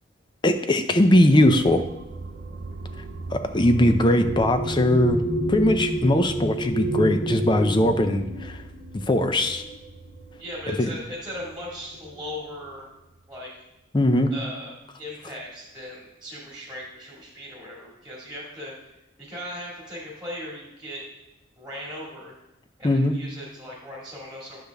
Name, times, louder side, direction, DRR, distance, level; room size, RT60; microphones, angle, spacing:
voice 1, 0.4-1.8 3.3-5.2 5.5-8.6 8.9-9.6 10.7-10.9 13.9-14.4 22.8-23.2, left 1 dB, 25° left, 8 dB, 0.5 m, -20 dB
sound 1, 1.4-10.4 11.3-11.4 11.8-12.3, right 1 dB, 60° left, 2.3 m, -31 dB
sound 2, 1.4-13.4, right 3 dB, 45° right, 0.4 m, -40 dB
voice 2, 10.4-12.9 13.3-13.5 14.3-18.7 19.2-21.1 21.6-22.3 22.8-24.6, left 1 dB, 5° right, -4 dB, 2.0 m, -38 dB
9.8 x 6.7 x 3.5 m, 0.97 s
head